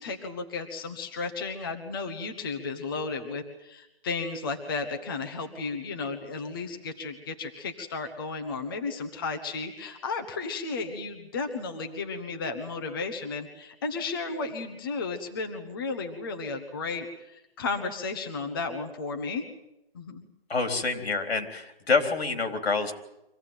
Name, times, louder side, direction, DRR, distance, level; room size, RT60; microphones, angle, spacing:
voice 1, 0.0-19.4 19.9-20.3, left 4 dB, 20° left, 5 dB, 1.3 m, -34 dB
voice 2, 20.5-22.9, left 4 dB, 80° left, 6 dB, 4.1 m, -27 dB
25.0 x 17.0 x 9.1 m, 0.91 s
hypercardioid pair, 175°, 31 cm